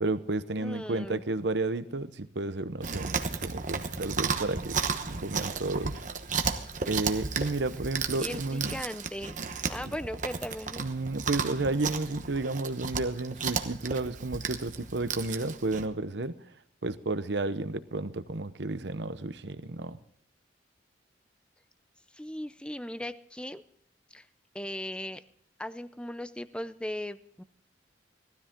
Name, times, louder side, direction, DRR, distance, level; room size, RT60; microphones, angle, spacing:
voice 1, 0.0-3.2 3.4-4.8 5.2-6.0 6.9-8.8 10.8-16.3 16.8-20.0, right 2 dB, 70° right, 12 dB, 0.9 m, -32 dB
voice 2, 0.6-1.2 8.2-9.4 9.7-10.8 22.1-23.6 24.1-24.3 24.5-25.2 25.6-27.4, left 1 dB, 5° left, 13 dB, 0.5 m, -38 dB
Chewing mastication, 2.8-15.9, right 5 dB, 45° right, 1.1 m, -34 dB
18.5 x 13.0 x 3.7 m, 0.68 s
head